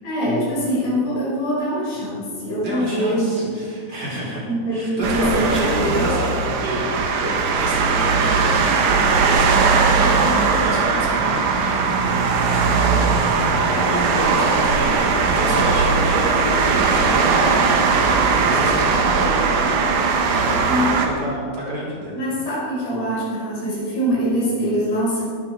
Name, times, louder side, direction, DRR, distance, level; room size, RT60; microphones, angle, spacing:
voice 1, 0.0-3.3 4.1-4.2 4.4-6.1 20.6-20.9 22.1-25.2, equal, 90° left, -6 dB, 7.6 m, -23 dB
voice 2, 2.6-4.4 4.7-12.2 12.4-13.2 13.7-17.4 18.0-19.8 20.3-22.1, equal, 25° right, -5 dB, 5.2 m, -29 dB
sound 1, 5.0-21.1, right 4 dB, 70° right, 3.1 m, -19 dB
21.0 x 12.0 x 4.9 m, 2.2 s
omnidirectional pair, 4.6 m